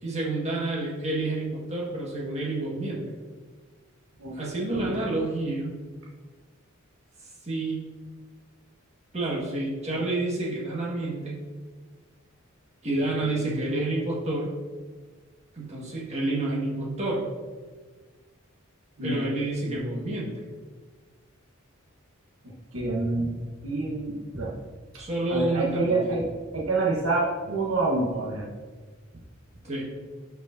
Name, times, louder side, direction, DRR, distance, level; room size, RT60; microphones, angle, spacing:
voice 1, 0.0-3.1 4.3-5.8 7.4-7.9 9.1-11.4 12.8-14.5 15.5-17.2 19.0-20.4 25.0-26.2 29.6-29.9, right 2 dB, 30° right, -5 dB, 1.7 m, -29 dB
voice 2, 22.7-23.3 23.6-24.5 24.9-25.0 25.3-26.3 26.5-28.5, right 2 dB, 75° right, -4 dB, 1.1 m, -27 dB
10.5 x 4.7 x 2.7 m, 1.4 s
head